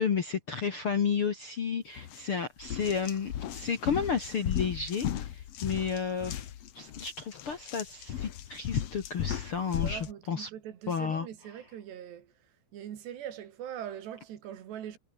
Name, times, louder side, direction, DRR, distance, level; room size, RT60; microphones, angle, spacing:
voice 1, 0.0-6.4 6.7-10.5 10.9-11.3, left 6 dB, 50° left, 1.6 m, -32 dB
sound 1, 2.0-2.2 2.6-10.1, left 10 dB, 75° left, 1.4 m, -36 dB
voice 2, 9.8-12.3 12.7-15.0, right 10 dB, 80° right, 4.4 m, -42 dB
omnidirectional pair, 4.8 m